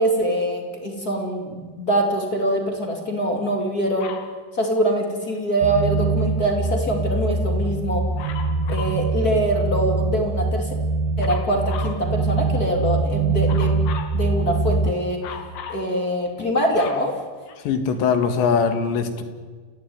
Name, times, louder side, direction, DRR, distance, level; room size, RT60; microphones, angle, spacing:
voice 1, 0.0-4.1 4.5-8.1 8.7-10.7 11.2-13.7 14.1-15.2 15.7-17.1, right 1 dB, 25° left, 2 dB, 2.4 m, -23 dB
Dog, 4.0-4.4 8.2-9.0 11.2-12.0 13.5-14.2 15.2-15.9 16.4-17.9 18.7-18.8, left 7 dB, 60° left, 3.7 m, -36 dB
sound 1, 5.6-14.9, right 3 dB, 65° right, 2.1 m, -23 dB
voice 2, 17.7-19.2, left 6 dB, 75° left, 8 dB, 4.1 m, -21 dB
29.5 x 15.5 x 9.5 m, 1.5 s
omnidirectional pair, 5.1 m